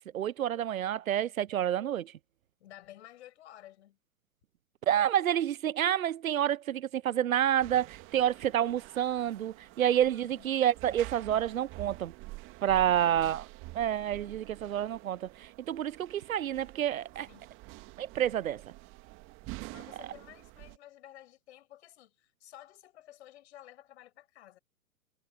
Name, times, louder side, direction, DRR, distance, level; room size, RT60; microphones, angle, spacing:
voice 1, 0.1-2.1 4.8-12.1 12.6-13.5 13.7-17.3 18.0-18.6, right 11 dB, 75° right, 0.5 m, -29 dB
voice 2, 2.6-4.0 8.3-8.4 10.1-10.5 12.9-13.3 17.3-17.5 19.4-24.6, left 13 dB, 50° left, 6.0 m, -53 dB
sound 1, 7.6-20.8, right 22 dB, 30° right, 2.2 m, -48 dB
figure-of-eight pair, 110°, 42 cm